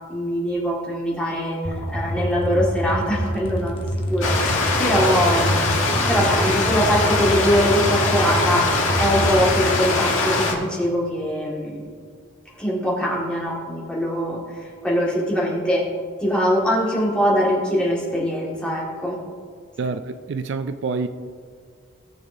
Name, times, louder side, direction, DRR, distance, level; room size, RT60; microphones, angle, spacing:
voice 1, 0.1-8.7 9.0-11.9 12.6-15.9 16.2-19.2, equal, 5° left, 1.7 m, -23 dB
sound 1, 1.6-9.6, equal, 25° left, 0.9 m, -27 dB
Stream, 4.2-10.5, left 3 dB, 90° left, 1.5 m, -22 dB
voice 2, 19.8-21.1, right 4 dB, 60° right, 0.3 m, -27 dB
17.5 x 6.8 x 2.7 m
head